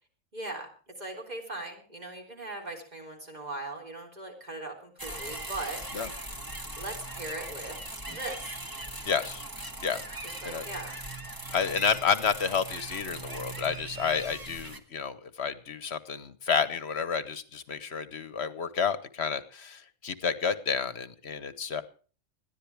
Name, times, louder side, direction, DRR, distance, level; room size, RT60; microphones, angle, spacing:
voice 1, 0.3-0.7 1.0-5.8 6.8-7.8 8.1-8.4 10.2-10.9, right 2 dB, 35° right, 2 dB, 3.8 m, -39 dB
sound 1, 5.0-14.8, right 2 dB, 15° right, 1.4 m, -40 dB
voice 2, 9.0-9.4 9.8-10.0 10.4-10.6 11.5-21.8, left 6 dB, 55° left, 13 dB, 1.3 m, -30 dB
21.0 x 14.0 x 3.4 m, 0.38 s
omnidirectional pair, 1.3 m